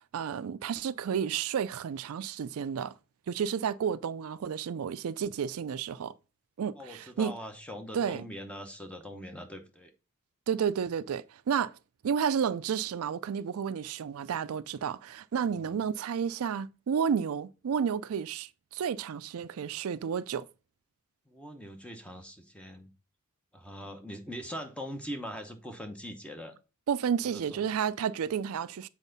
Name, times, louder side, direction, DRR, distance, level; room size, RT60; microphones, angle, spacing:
voice 1, 0.1-2.9 3.3-6.1 6.6-7.3 7.9-8.3 10.5-11.7 12.0-20.5 26.9-28.9, right 7 dB, 85° right, 0.4 m, -31 dB
voice 2, 6.8-9.9 15.5-15.8 21.3-22.9 23.5-26.5 27.3-27.6, equal, 5° left, 0.9 m, -42 dB
7.3 x 4.4 x 4.0 m
head